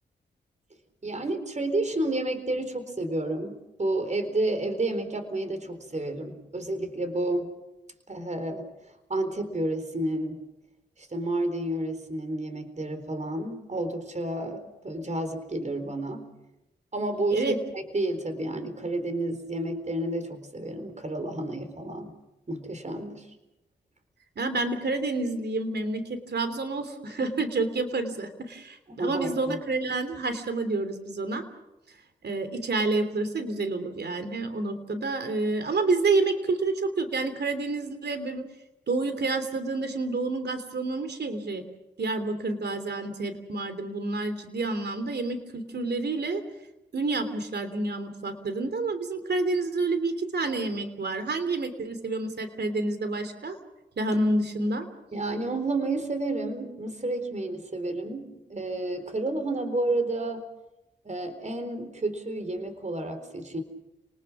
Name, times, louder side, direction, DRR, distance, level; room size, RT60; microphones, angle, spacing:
voice 1, 1.0-3.5 3.8-7.5 8.1-8.7 9.1-10.4 11.0-16.3 16.9-22.1 22.5-23.3 28.9-29.6 55.1-60.4 61.0-63.6, right 2 dB, 40° right, 8 dB, 4.2 m, -30 dB
voice 2, 24.4-31.4 32.2-38.4 38.9-41.6 42.0-46.4 46.9-53.6 54.0-54.8, right 3 dB, 65° right, 9 dB, 3.2 m, -29 dB
30.0 x 19.5 x 6.2 m, 0.93 s
cardioid pair, 45°, 19 cm